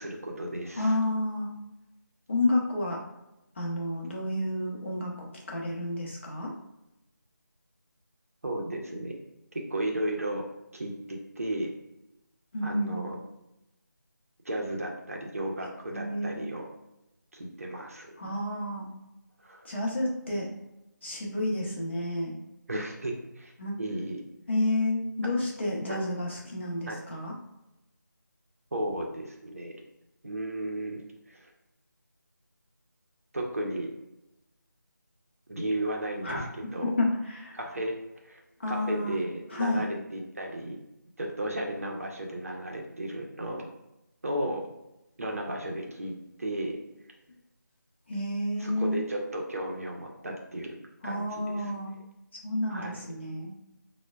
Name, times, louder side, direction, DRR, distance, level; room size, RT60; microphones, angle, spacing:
voice 1, 0.0-0.9 8.4-9.2 9.7-10.4 10.7-11.7 12.6-13.1 14.4-16.6 17.3-18.1 19.4-19.7 22.7-23.5 23.8-24.2 25.9-26.0 26.9-27.0 28.7-29.8 30.2-31.0 31.3-31.5 33.3-33.9 35.5-36.5 36.7-36.9 37.5-37.9 38.2-38.4 38.7-40.8 41.2-43.7 44.2-44.7 45.2-46.1 46.4-46.8 48.6-50.7 51.0-51.6 52.7-53.0, right 1 dB, 45° right, 0 dB, 0.6 m, -34 dB
voice 2, 0.8-1.5 2.3-3.0 3.6-6.5 12.5-13.0 15.6-16.4 18.2-18.9 19.6-20.5 21.0-22.3 23.6-23.7 24.5-27.3 36.2-37.6 38.6-39.2 39.5-39.9 48.1-49.0 51.0-51.9 52.4-53.5, left 1 dB, 35° left, -3 dB, 0.7 m, -30 dB
4.5 x 2.1 x 2.3 m, 0.93 s
figure-of-eight pair, 165°, 10 cm